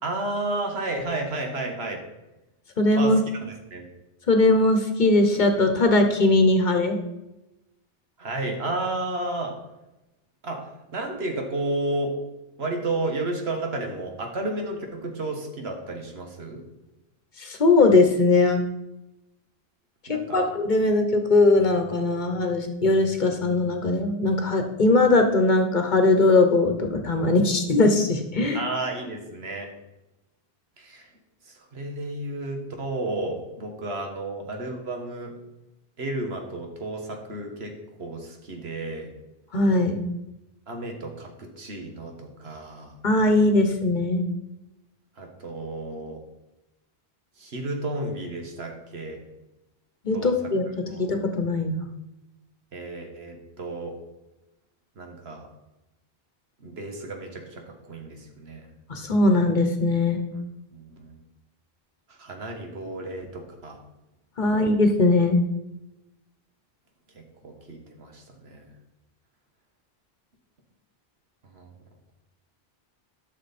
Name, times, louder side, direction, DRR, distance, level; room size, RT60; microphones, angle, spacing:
voice 1, 0.0-2.0 2.9-3.9 8.2-9.5 10.4-12.1 12.6-16.6 20.1-20.5 28.5-29.7 30.8-31.1 31.4-35.3 36.0-37.7 38.0-39.1 40.7-43.0 45.2-46.2 47.4-49.2 50.1-50.3 50.9-51.1 52.7-54.0 54.9-55.4 56.6-58.7 60.7-61.2 62.1-63.8 64.4-64.7 67.1-68.7 71.5-71.7, right 2 dB, 80° right, 3 dB, 1.7 m, -32 dB
voice 2, 2.8-3.2 4.3-7.0 17.4-18.6 20.1-28.6 39.5-40.0 43.0-44.2 50.0-50.6 51.0-51.9 58.9-60.2 64.4-65.4, left 2 dB, 50° left, 6 dB, 1.1 m, -20 dB
11.5 x 6.3 x 4.2 m, 0.96 s
omnidirectional pair, 1.0 m